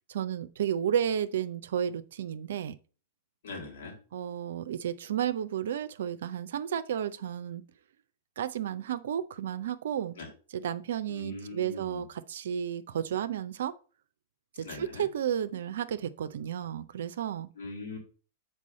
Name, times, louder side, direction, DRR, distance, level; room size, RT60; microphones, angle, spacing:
voice 1, 0.1-2.8 4.1-7.6 8.4-10.2 10.5-13.8 14.6-17.5, right 9 dB, 70° right, 0.5 m, -32 dB
voice 2, 3.4-4.0 10.2-10.3 11.1-12.1 14.6-15.0 17.6-18.0, left 3 dB, 70° left, 3.2 m, -41 dB
6.1 x 4.6 x 5.3 m
hypercardioid pair, 100°, 0 cm